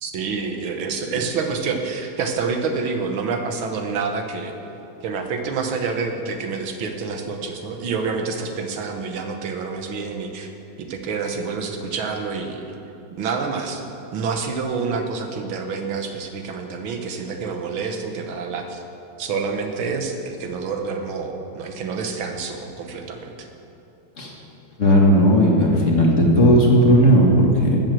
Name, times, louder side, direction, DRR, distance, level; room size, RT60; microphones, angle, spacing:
voice 1, 0.0-4.5 5.0-10.5 10.8-12.8 13.1-13.8 14.1-18.8 19.2-23.5, right 4 dB, 85° right, 4 dB, 1.9 m, -27 dB
voice 2, 24.8-27.8, equal, 40° left, -1 dB, 1.8 m, -15 dB
13.0 x 7.6 x 7.7 m, 2.9 s
omnidirectional pair, 2.2 m